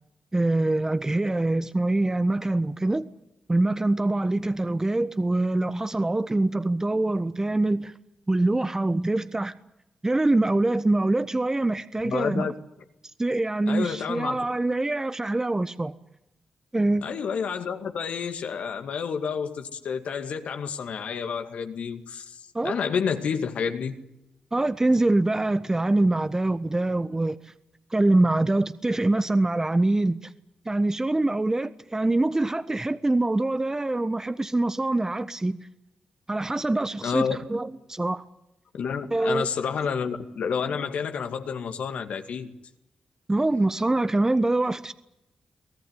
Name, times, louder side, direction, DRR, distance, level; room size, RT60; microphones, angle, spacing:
voice 1, 0.3-3.1 3.5-7.9 8.3-9.5 10.0-12.5 13.2-15.9 16.7-17.1 22.5-22.8 24.5-27.4 27.9-30.3 30.6-35.7 36.3-38.2 39.1-39.5 43.3-44.9, right 2 dB, 25° right, 1.3 m, -24 dB
voice 2, 12.0-12.5 13.7-14.4 17.0-24.0 37.0-37.4 38.7-42.5, left 6 dB, 75° left, 2.3 m, -29 dB
24.0 x 17.5 x 9.8 m
supercardioid pair, 40°, 2 cm